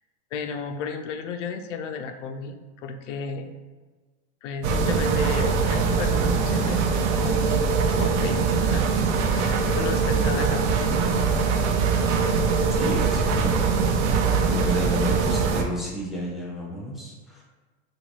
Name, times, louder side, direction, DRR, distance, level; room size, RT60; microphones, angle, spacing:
voice 1, 0.3-3.5 4.4-9.0 9.3-11.3, left 5 dB, 85° left, 6 dB, 0.5 m, -33 dB
sound 1, 4.6-15.6, right 5 dB, 80° right, 0.5 m, -22 dB
voice 2, 12.7-13.6 14.4-17.4, equal, ahead, -4 dB, 0.4 m, -32 dB
3.0 x 2.6 x 3.0 m, 1.3 s
supercardioid pair, 135°, 36 cm